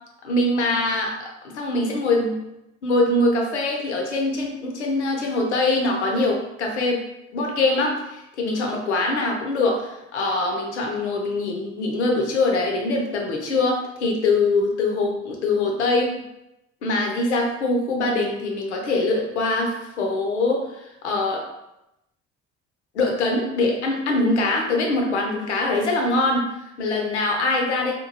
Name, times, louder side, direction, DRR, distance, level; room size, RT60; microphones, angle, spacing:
voice 1, 0.2-2.4 2.8-16.1 16.8-20.7 21.0-21.4 22.9-26.5 26.8-27.9, left 2 dB, 80° left, 1 dB, 0.5 m, -23 dB
2.9 x 2.3 x 2.5 m, 0.90 s
figure-of-eight pair, 50°, 34 cm